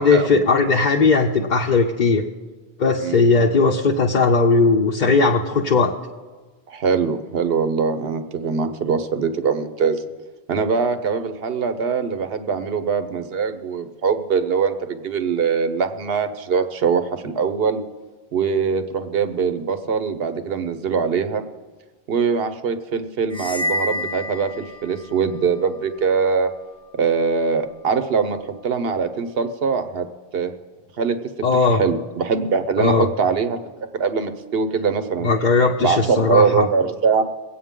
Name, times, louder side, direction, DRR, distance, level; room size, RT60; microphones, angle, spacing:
voice 1, 0.0-2.2 2.8-5.9 31.4-31.8 32.8-33.1 35.2-36.7, left 4 dB, 50° left, 0 dB, 0.8 m, -18 dB
voice 2, 6.7-10.0 10.5-17.8 18.3-21.4 22.1-26.5 26.9-28.4 28.6-30.1 30.3-30.5 31.0-31.2 31.6-35.3 35.8-37.2, right 5 dB, 70° right, 9 dB, 1.1 m, -22 dB
sound 1, 23.3-25.2, left 1 dB, 5° left, 0.6 m, -28 dB
23.0 x 8.7 x 3.7 m, 1.3 s
omnidirectional pair, 1.1 m